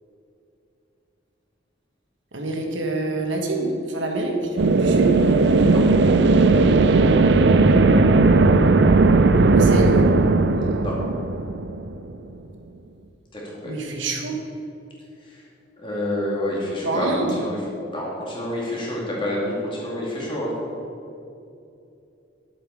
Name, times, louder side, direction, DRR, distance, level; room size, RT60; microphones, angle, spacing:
voice 1, 2.3-5.2 9.5-10.0 13.6-14.3 16.8-17.4, right 2 dB, 75° right, 2 dB, 1.4 m, -26 dB
sound 1, 4.6-12.1, right 3 dB, 60° right, 0.5 m, -16 dB
voice 2, 5.5-5.8 10.5-10.9 13.3-13.7 15.3-15.4 15.8-17.6 17.9-20.5, left 1 dB, 25° left, -4 dB, 2.5 m, -28 dB
11.0 x 8.0 x 4.8 m, 2.7 s
head